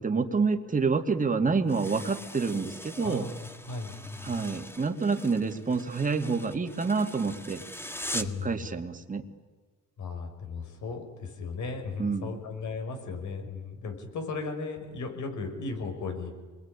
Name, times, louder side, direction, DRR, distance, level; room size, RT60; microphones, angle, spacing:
voice 1, 0.0-3.3 4.2-7.6 8.1-9.2 12.0-12.4, right 4 dB, 25° right, 5 dB, 2.5 m, -28 dB
sound 1, 1.7-8.5, left 1 dB, 10° left, 1.8 m, -42 dB
voice 2, 3.0-4.4 8.2-8.7 10.0-16.3, left 4 dB, 75° left, 5 dB, 5.9 m, -36 dB
27.5 x 21.5 x 9.9 m, 1.4 s
cardioid pair, 90°, 30 cm